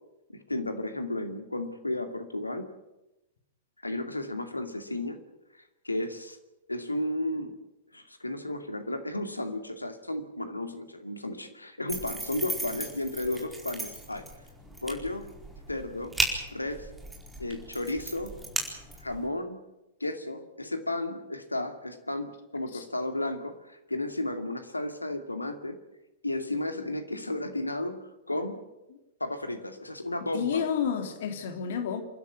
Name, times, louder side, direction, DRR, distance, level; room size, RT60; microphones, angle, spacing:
voice 1, 0.3-2.7 3.8-5.2 5.5-6.4 6.7-7.6 7.9-14.3 14.8-15.3 15.7-16.2 16.5-16.9 17.4-18.3 19.0-19.6 20.0-25.8 26.2-28.6 29.2-30.7, left 1 dB, 85° left, 2.4 m, -33 dB
sound 1, 11.9-19.3, right 1 dB, 5° right, 4.5 m, -36 dB
voice 2, 30.3-32.0, left 7 dB, 55° left, 3.1 m, -30 dB
28.0 x 12.0 x 9.9 m
figure-of-eight pair, 100°, 0 cm